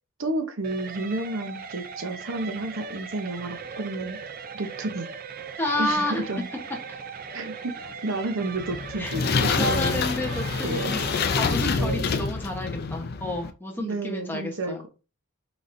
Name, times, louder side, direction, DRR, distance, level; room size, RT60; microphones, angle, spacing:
voice 1, 0.2-4.2 4.5-5.1 5.8-6.5 7.3-10.0 10.6-10.9 11.8-12.1 13.8-14.9, right 2 dB, 65° right, 6 dB, 0.8 m, -31 dB
sound 1, 0.6-11.5, right 5 dB, 45° right, 0.5 m, -39 dB
voice 2, 5.6-6.3 6.9-7.0 9.0-9.1 9.6-14.8, left 1 dB, 10° left, 1 dB, 1.0 m, -30 dB
sound 2, 8.6-13.5, left 5 dB, 50° left, 0.4 m, -27 dB
4.9 x 4.0 x 2.6 m, 0.33 s
head